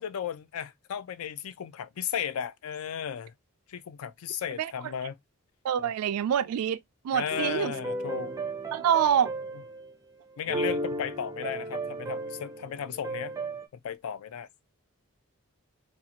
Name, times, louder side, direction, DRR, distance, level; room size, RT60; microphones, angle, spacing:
voice 1, 0.0-3.3 3.7-5.2 5.8-5.9 7.1-8.4 10.4-13.3 13.8-14.5, left 8 dB, 70° left, 0.4 m, -35 dB
voice 2, 5.6-6.8 7.0-7.7 8.7-9.3, right 9 dB, 85° right, 0.3 m, -25 dB
sound 1, 7.3-9.9 10.4-13.7, right 2 dB, 15° right, 0.4 m, -35 dB
2.6 x 2.4 x 2.7 m
head